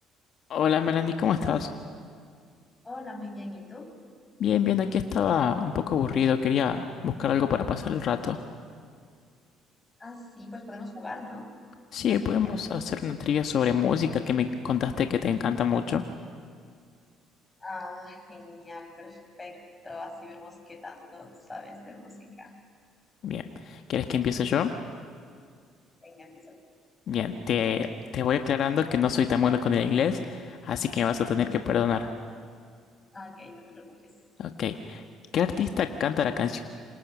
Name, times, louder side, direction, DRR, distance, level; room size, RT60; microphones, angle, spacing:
voice 1, 0.5-1.7 4.4-8.4 11.9-16.0 23.2-24.7 27.1-27.9 28.1-32.1 34.4-35.0 35.3-36.6, left 8 dB, 60° left, 6 dB, 1.3 m, -26 dB
voice 2, 2.8-3.9 10.0-11.5 12.0-12.6 17.6-19.6 19.8-22.5 26.0-26.6 33.1-34.1, left 2 dB, 20° left, 2 dB, 7.4 m, -42 dB
27.5 x 26.5 x 6.2 m, 2.1 s
hypercardioid pair, 65°, 0 cm